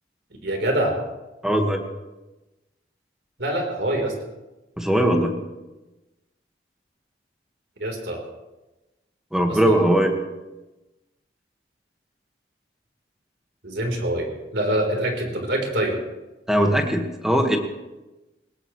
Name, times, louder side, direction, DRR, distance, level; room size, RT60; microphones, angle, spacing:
voice 1, 0.4-1.0 3.4-4.1 7.8-8.2 9.5-9.7 13.6-16.0, right 1 dB, 75° right, 2 dB, 4.0 m, -25 dB
voice 2, 1.4-1.8 4.8-5.3 9.3-10.1 16.5-17.6, right 1 dB, 5° right, 2 dB, 1.7 m, -20 dB
20.5 x 18.5 x 3.2 m, 1.1 s
head